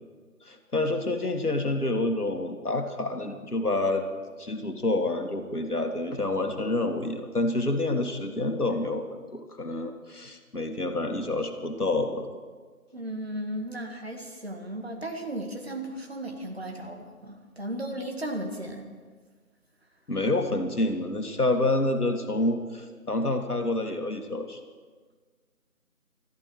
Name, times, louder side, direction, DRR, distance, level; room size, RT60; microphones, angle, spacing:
voice 1, 0.4-4.0 4.4-9.0 9.3-12.3 20.1-24.6, left 2 dB, 75° left, 5 dB, 2.1 m, -28 dB
voice 2, 12.9-18.9, right 1 dB, 40° right, 3 dB, 1.9 m, -35 dB
21.0 x 13.5 x 4.6 m, 1.5 s
figure-of-eight pair, 170°, 45 cm